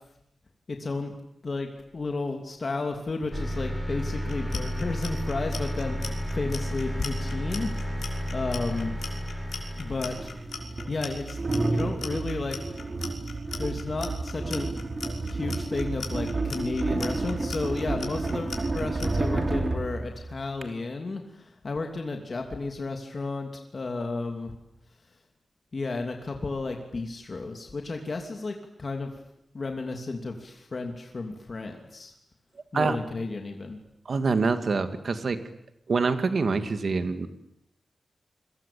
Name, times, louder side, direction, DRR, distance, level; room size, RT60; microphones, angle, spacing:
voice 1, 0.7-1.1 1.4-8.0 8.3-9.0 9.8-10.3 10.7-12.6 13.6-14.7 15.3-24.5 25.7-29.1 29.5-32.1 32.7-33.8, left 3 dB, 45° left, 3 dB, 2.9 m, -33 dB
sound 1, 3.3-10.5, equal, 5° left, 7.0 m, -32 dB
Clock, 4.2-19.1, left 5 dB, 75° left, 6.0 m, -39 dB
sound 2, 9.0-9.1 10.0-20.6, right 2 dB, 35° right, 3.2 m, -30 dB
voice 2, 34.1-35.4 35.9-37.3, right 4 dB, 60° right, 9 dB, 2.4 m, -25 dB
29.5 x 23.0 x 8.7 m, 0.77 s
wide cardioid pair, 150°, 0 cm